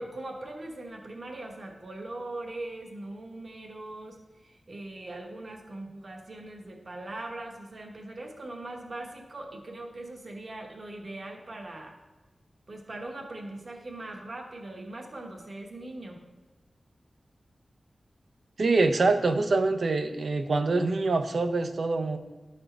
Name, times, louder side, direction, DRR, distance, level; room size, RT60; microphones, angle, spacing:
voice 1, 0.0-12.0 12.7-16.2, right 2 dB, 50° right, 1 dB, 1.2 m, -40 dB
voice 2, 18.6-22.2, right 3 dB, 65° right, 8 dB, 0.6 m, -25 dB
12.0 x 4.3 x 4.5 m, 1.2 s
wide cardioid pair, 120°, 0 cm